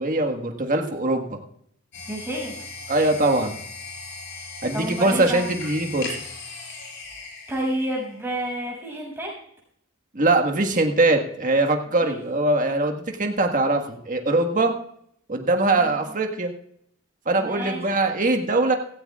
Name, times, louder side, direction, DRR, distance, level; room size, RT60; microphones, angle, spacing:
voice 1, 0.0-1.4 2.9-3.6 4.6-6.1 10.1-14.7 15.3-16.5 17.2-18.7, right 2 dB, 40° right, 4 dB, 1.6 m, -22 dB
sound 1, 1.9-8.5, left 4 dB, 60° left, 5.5 m, -38 dB
voice 2, 2.1-2.7 4.7-5.4 7.5-9.3 12.0-12.2 15.7-16.1 17.4-17.8, right 1 dB, 10° right, -3 dB, 6.8 m, -30 dB
17.0 x 16.0 x 2.4 m, 0.69 s
head